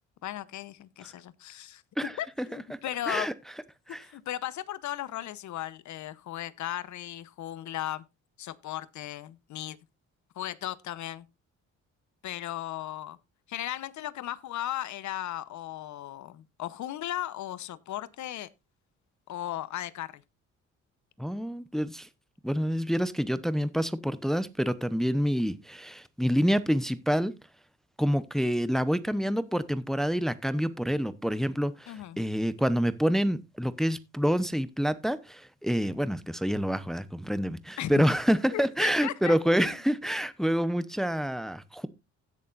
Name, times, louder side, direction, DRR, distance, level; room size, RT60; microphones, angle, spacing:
voice 1, 0.2-3.3 4.0-8.0 8.4-9.8 10.3-11.3 12.2-13.2 13.5-18.5 19.3-20.2 31.9-32.2 37.8-38.1 38.5-39.8, left 13 dB, 70° left, 0.9 m, -36 dB
voice 2, 21.2-22.1 22.4-27.3 28.0-41.9, equal, ahead, 0.8 m, -27 dB
16.5 x 6.8 x 2.5 m
cardioid pair, 90°, 30 cm